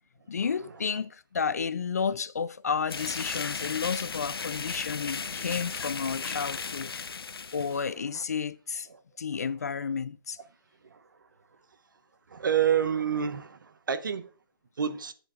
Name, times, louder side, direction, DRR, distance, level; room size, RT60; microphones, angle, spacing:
voice 1, 0.3-7.0 7.5-8.9 9.2-10.4, left 6 dB, 45° left, 0.4 m, -31 dB
sound 1, 2.9-7.9, left 5 dB, 80° left, 0.7 m, -35 dB
voice 2, 12.3-13.6 13.9-14.3 14.8-15.1, right 8 dB, 55° right, 0.8 m, -27 dB
13.0 x 8.0 x 2.4 m
hypercardioid pair, 170°, 13 cm